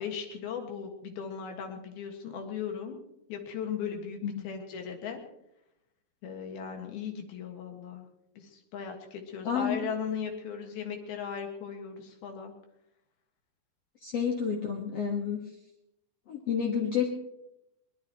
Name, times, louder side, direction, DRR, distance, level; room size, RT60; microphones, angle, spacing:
voice 1, 0.0-3.0 3.3-4.2 4.4-5.2 6.2-8.1 8.4-12.5, left 7 dB, 80° left, 4 dB, 3.5 m, -37 dB
voice 2, 9.4-9.8 14.0-15.4 16.3-17.1, left 7 dB, 55° left, 0 dB, 2.0 m, -29 dB
23.0 x 19.5 x 3.0 m, 0.83 s
omnidirectional pair, 4.3 m